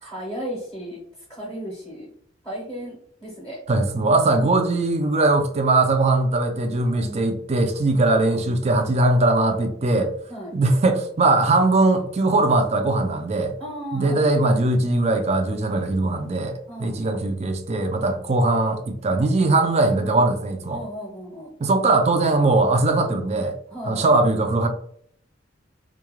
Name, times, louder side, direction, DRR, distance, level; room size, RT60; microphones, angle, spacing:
voice 1, 0.0-1.0 1.3-2.1 2.4-3.6 6.9-7.2 10.3-10.5 13.6-14.3 16.7-17.0 18.0-18.2 20.7-21.5 23.7-24.1, equal, 10° left, 0.8 m, -35 dB
voice 2, 3.7-10.1 10.5-13.5 13.9-20.8 21.6-23.6 23.8-24.7, right 2 dB, 35° right, 0.4 m, -20 dB
2.3 x 2.1 x 3.0 m
head